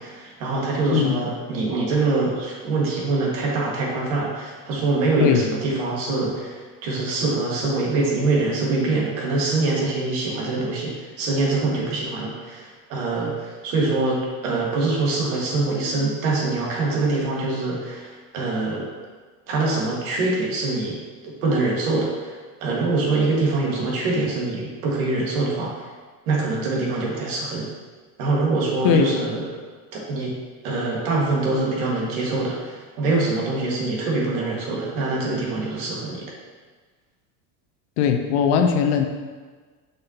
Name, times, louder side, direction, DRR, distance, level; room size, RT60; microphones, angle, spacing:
voice 1, 0.0-18.9 19.5-21.0 21.4-22.3 22.6-25.7 26.3-27.7 28.2-29.6 29.9-30.4 30.6-36.3, right 3 dB, 70° right, -3 dB, 1.9 m, -24 dB
voice 2, 38.0-39.1, left 7 dB, 60° left, 5 dB, 0.7 m, -19 dB
6.5 x 5.7 x 2.9 m, 1.4 s
cardioid pair, 170°, 42 cm